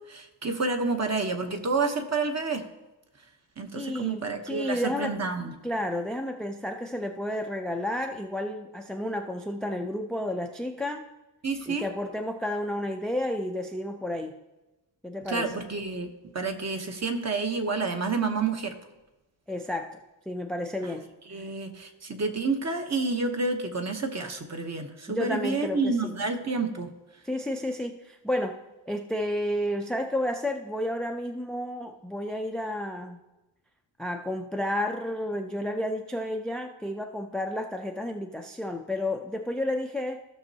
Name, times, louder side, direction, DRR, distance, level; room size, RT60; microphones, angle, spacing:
voice 1, 0.0-2.6 3.6-5.5 11.4-11.9 15.3-16.1 16.3-18.7 21.3-26.9, right 4 dB, 35° right, 4 dB, 1.0 m, -29 dB
voice 2, 3.7-5.2 5.6-11.1 11.7-14.4 15.0-15.5 19.5-20.0 20.3-21.0 25.1-26.1 27.3-28.6 28.9-33.2 34.0-40.2, left 1 dB, ahead, 5 dB, 0.3 m, -31 dB
15.0 x 6.2 x 2.8 m, 1.0 s
wide cardioid pair, 130°, 46 cm